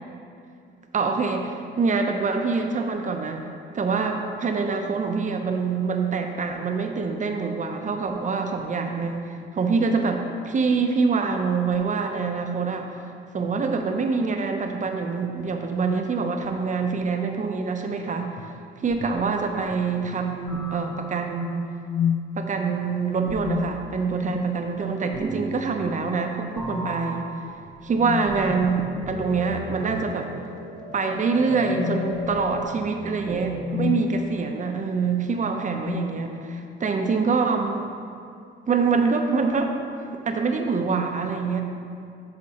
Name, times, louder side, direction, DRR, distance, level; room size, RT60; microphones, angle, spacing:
voice 1, 0.9-3.5 3.7-12.9 13.3-18.5 18.8-21.6 22.4-27.3 27.9-30.3 30.9-37.9 38.7-39.7 40.1-41.6, right 4 dB, 40° right, 4 dB, 0.6 m, -25 dB
sound 1, 18.4-18.5 19.0-19.2 19.7-20.2 21.8-22.4 23.3-24.6 24.9-25.2 25.9-26.3 26.7-27.0 27.9-28.5 29.6-30.1 30.5-30.7 31.6-34.2 35.0-35.3 35.7-36.8, left 7 dB, 80° left, 0.4 m, -32 dB
sound 2, 18.9-19.7 20.5-21.5 23.3-23.8 25.1-26.3 26.6-33.9, equal, 5° left, 1.0 m, -36 dB
10.5 x 4.3 x 2.9 m, 2.4 s
cardioid pair, 90°, 20 cm